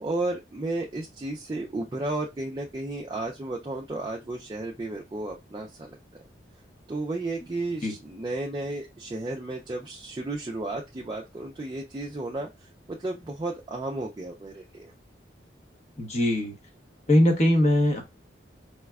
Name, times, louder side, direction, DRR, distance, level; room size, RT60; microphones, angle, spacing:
voice 1, 0.0-6.0 6.9-12.5 12.9-14.9, right 2 dB, 25° right, -1 dB, 0.4 m, -33 dB
voice 2, 16.0-16.5 17.1-18.0, left 1 dB, 35° left, 4 dB, 0.8 m, -21 dB
4.8 x 2.2 x 2.2 m, 0.22 s
head